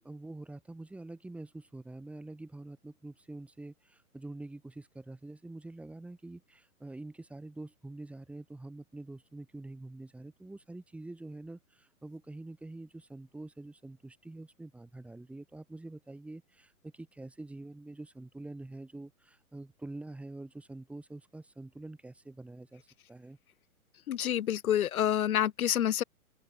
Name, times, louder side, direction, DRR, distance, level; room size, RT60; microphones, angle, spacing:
voice 1, 0.0-23.4, right 2 dB, 5° right, 1.6 m, -46 dB
voice 2, 24.1-26.0, left 11 dB, 70° left, 0.8 m, -28 dB
open air
hypercardioid pair, 135°, 44 cm